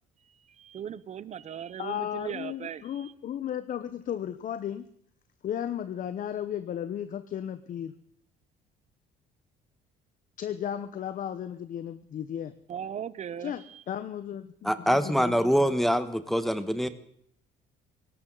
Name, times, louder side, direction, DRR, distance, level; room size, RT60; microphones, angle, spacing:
voice 1, 0.6-3.1 12.7-13.8, right 9 dB, 45° right, 18 dB, 0.9 m, -38 dB
voice 2, 1.8-4.8 5.4-7.9 10.4-12.5 13.4-15.4, left 10 dB, 50° left, 11 dB, 1.0 m, -35 dB
voice 3, 14.6-16.9, equal, ahead, 10 dB, 1.3 m, -24 dB
18.5 x 17.0 x 4.0 m, 0.69 s
cardioid pair, 110°, 17 cm